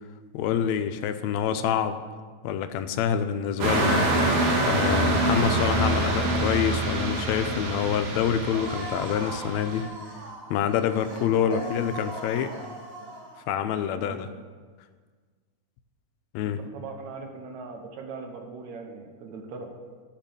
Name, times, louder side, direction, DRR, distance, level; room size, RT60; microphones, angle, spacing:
voice 1, 0.3-2.0 2.4-4.1 4.6-9.9 10.5-12.5 13.5-14.3 16.3-16.6, left 8 dB, 80° left, 9 dB, 1.8 m, -26 dB
sound 1, 3.6-9.7, right 2 dB, 90° right, 3.2 m, -25 dB
sound 2, 8.5-13.4, right 1 dB, 40° right, 2.4 m, -39 dB
voice 2, 11.4-11.9 13.9-14.2 16.4-19.7, right 4 dB, 75° right, 3 dB, 2.5 m, -39 dB
12.0 x 5.8 x 6.9 m, 1.5 s
omnidirectional pair, 3.4 m